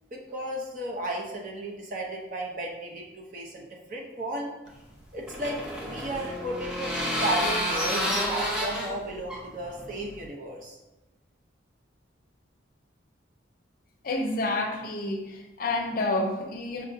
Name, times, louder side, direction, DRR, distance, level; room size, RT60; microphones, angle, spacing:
voice 1, 0.1-4.5 5.1-10.8, right 1 dB, 40° right, -1 dB, 0.6 m, -34 dB
sound 1, 4.7-10.3, equal, 5° right, 0.5 m, -30 dB
voice 2, 14.0-16.8, left 2 dB, 45° left, 3 dB, 0.5 m, -29 dB
5.5 x 2.6 x 2.6 m, 1.0 s
head